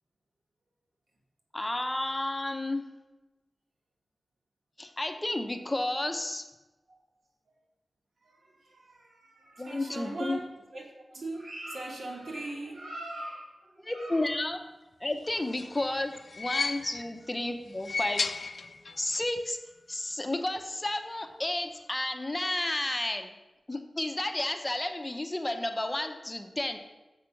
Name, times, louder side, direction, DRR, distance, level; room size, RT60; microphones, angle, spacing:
voice 1, 1.5-2.8 4.8-6.4 9.6-10.4 13.8-14.6 15.0-18.3 19.0-19.6 19.9-23.3 23.7-26.8, left 1 dB, 20° left, 6 dB, 0.6 m, -32 dB
voice 2, 8.6-10.4 10.7-10.8 11.1-14.3 16.8-17.0, right 2 dB, 85° right, 0 dB, 1.6 m, -40 dB
sound 1, 15.3-17.2 17.7-19.1 19.4-19.5 20.6-20.7, left 4 dB, 60° left, 0.3 m, -34 dB
6.9 x 5.0 x 5.7 m, 1.1 s
wide cardioid pair, 100°, 0 cm